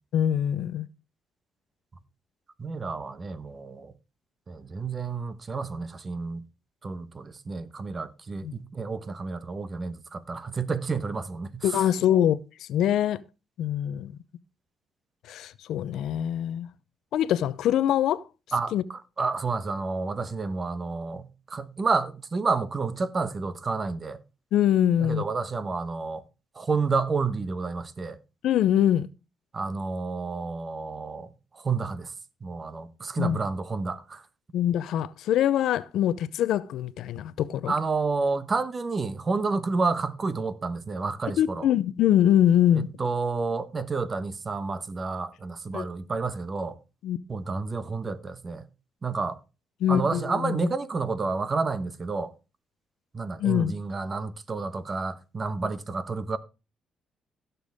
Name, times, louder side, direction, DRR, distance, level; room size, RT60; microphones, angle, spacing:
voice 1, 0.1-0.9 8.4-8.5 11.6-12.4 12.7-13.2 13.6-14.1 15.3-16.7 17.1-18.2 18.7-18.8 24.5-25.2 28.4-29.1 33.2-33.4 34.5-37.7 41.4-42.9 45.7-45.9 47.0-47.2 49.8-50.7 53.4-53.7, left 10 dB, 80° left, 0.6 m, -23 dB
voice 2, 2.6-3.9 4.5-6.4 6.8-11.9 18.5-24.2 25.0-26.2 26.5-28.2 29.5-31.3 31.5-32.1 32.4-34.2 37.7-41.7 42.7-46.8 47.3-48.6 49.0-49.4 49.9-52.3 53.1-56.4, right 4 dB, 35° right, 1.1 m, -30 dB
16.0 x 7.0 x 3.5 m
cardioid pair, 90°, 0 cm